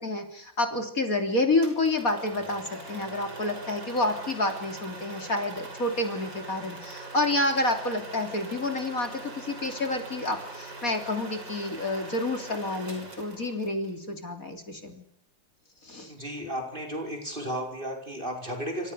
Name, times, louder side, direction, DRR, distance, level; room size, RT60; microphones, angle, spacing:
voice 1, 0.0-9.1 9.4-15.1 15.8-16.1, left 2 dB, 45° left, 5 dB, 3.6 m, -29 dB
sound 1, 1.6-13.9, right 3 dB, 70° right, 6.7 m, -42 dB
voice 2, 16.1-18.9, equal, 25° right, 3 dB, 5.2 m, -34 dB
27.5 x 26.5 x 6.8 m, 0.69 s
omnidirectional pair, 2.1 m